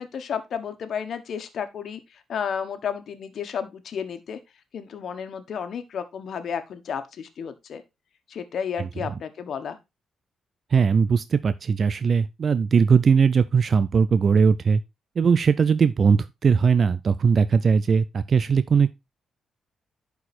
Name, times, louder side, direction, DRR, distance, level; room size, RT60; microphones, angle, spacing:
voice 1, 0.0-4.4 4.7-7.8 8.3-9.8, left 7 dB, 65° left, 1.4 m, -32 dB
voice 2, 10.7-14.8 15.2-18.9, right 6 dB, 45° right, 0.5 m, -20 dB
11.0 x 4.7 x 4.2 m
cardioid pair, 95°, 0 cm